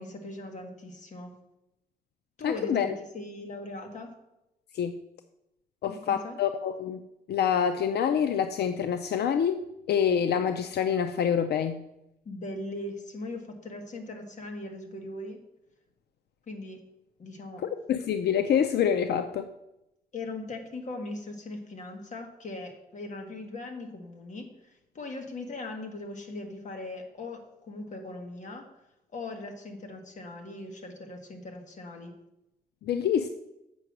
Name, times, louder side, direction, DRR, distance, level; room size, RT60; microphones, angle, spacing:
voice 1, 0.0-1.3 2.4-4.1 5.9-6.4 12.2-15.4 16.5-16.8 17.2-17.6 20.1-28.6 29.1-32.1, left 2 dB, 45° left, 4 dB, 1.5 m, -39 dB
voice 2, 2.4-2.9 4.7-4.9 5.8-7.0 7.3-9.6 9.9-11.8 17.6-19.5 32.8-33.3, left 8 dB, 80° left, 9 dB, 0.5 m, -26 dB
7.8 x 5.8 x 6.0 m, 0.89 s
wide cardioid pair, 155°, 17 cm